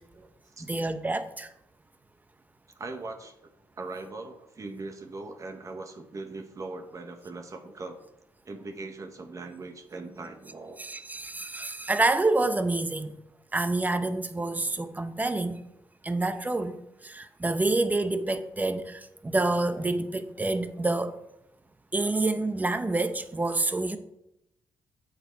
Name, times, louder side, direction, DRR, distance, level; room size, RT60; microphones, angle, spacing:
voice 1, 0.6-1.5 10.8-13.1 13.5-15.6 16.0-16.8 17.0-21.2 21.9-24.0, right 2 dB, 20° right, 0.9 m, -27 dB
voice 2, 2.7-3.3 3.8-8.0 8.4-10.8, right 3 dB, 40° right, 1.4 m, -40 dB
8.0 x 6.5 x 4.6 m
supercardioid pair, 65°, 8 cm